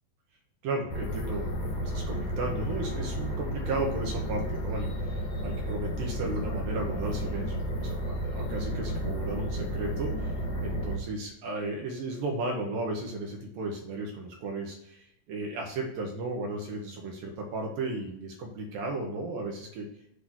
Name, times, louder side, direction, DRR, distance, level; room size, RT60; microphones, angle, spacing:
voice 1, 0.6-19.9, right 2 dB, 75° right, 0 dB, 2.6 m, -35 dB
sound 1, 0.9-11.0, equal, 70° left, 1.7 m, -32 dB
8.3 x 2.8 x 6.2 m, 0.80 s
omnidirectional pair, 4.3 m